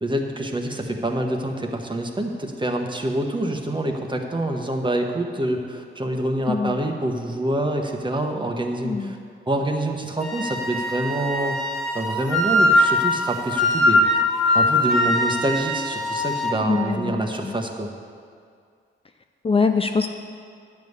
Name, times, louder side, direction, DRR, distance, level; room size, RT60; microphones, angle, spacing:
voice 1, 0.0-9.2 9.5-11.6 11.9-14.0 14.5-17.9, right 1 dB, 25° right, 3 dB, 1.2 m, -26 dB
voice 2, 8.8-9.1 16.7-17.5 19.4-20.1, left 4 dB, 30° left, 5 dB, 0.5 m, -23 dB
Wind instrument woodwind instrument, 10.2-16.6, left 1 dB, ahead, 1.5 m, -21 dB
10.5 x 5.5 x 8.0 m, 2.2 s
cardioid pair, 80°, 20 cm